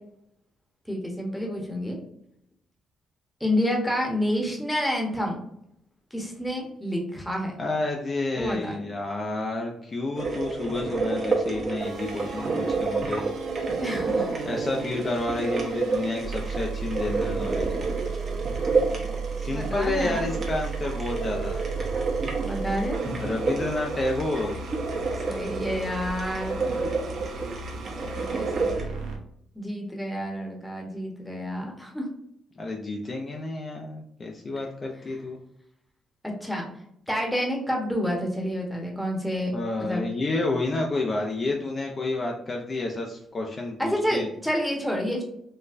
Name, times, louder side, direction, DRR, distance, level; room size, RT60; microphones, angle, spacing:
voice 1, 0.9-2.0 3.4-5.4 6.1-7.5 8.4-8.8 13.8-14.3 19.5-20.2 22.4-23.0 25.3-26.6 28.0-29.1 29.5-32.1 36.2-36.7 37.1-39.5 39.8-40.0 43.8-45.2, equal, 5° left, 0 dB, 0.9 m, -29 dB
voice 2, 7.6-13.3 14.5-18.1 19.4-21.7 23.2-24.6 32.6-35.4 39.5-44.3, left 2 dB, 35° left, 0 dB, 0.5 m, -30 dB
sound 1, 10.2-28.8, right 4 dB, 45° right, 0.9 m, -30 dB
sound 2, 11.8-29.2, right 5 dB, 85° right, 0.6 m, -36 dB
4.2 x 2.2 x 2.5 m, 0.74 s
cardioid pair, 90°, 0 cm